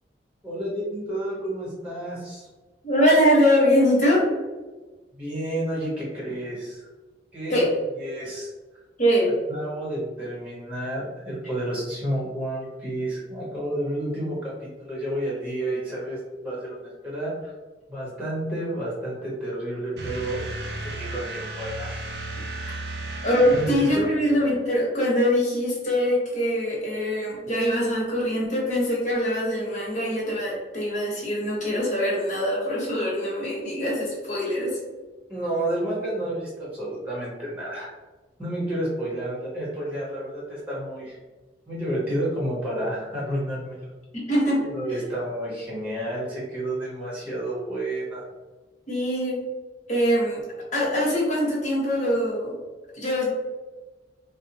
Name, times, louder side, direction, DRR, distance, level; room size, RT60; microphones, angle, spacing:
voice 1, 0.4-2.5 5.1-6.9 7.3-7.6 8.0-8.5 9.5-17.5 17.9-20.4 20.8-21.9 23.5-24.1 35.3-37.9 38.4-41.2 41.7-43.9 44.6-48.2, right 1 dB, 10° right, -6 dB, 0.9 m, -30 dB
voice 2, 2.8-4.3 7.5-7.7 9.0-9.3 22.6-22.7 23.2-34.8 44.1-44.7 48.9-49.4 49.9-50.4 50.7-52.6 53.0-53.3, equal, 40° left, -5 dB, 1.2 m, -23 dB
sound 1, 20.0-24.7, right 2 dB, 65° right, 0.5 m, -35 dB
4.0 x 2.1 x 2.8 m, 1.2 s
head